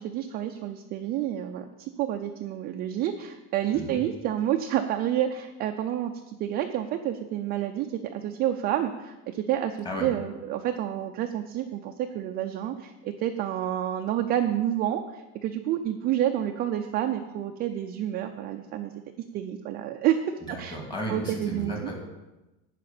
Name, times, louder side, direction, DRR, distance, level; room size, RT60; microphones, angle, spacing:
voice 1, 0.0-19.0 19.3-20.2 20.5-20.8 21.1-21.7, right 11 dB, 30° right, 5 dB, 0.4 m, -29 dB
voice 2, 20.5-22.0, equal, 10° left, -1 dB, 2.2 m, -34 dB
11.5 x 5.0 x 8.6 m, 1.0 s
cardioid pair, 175°, 35 cm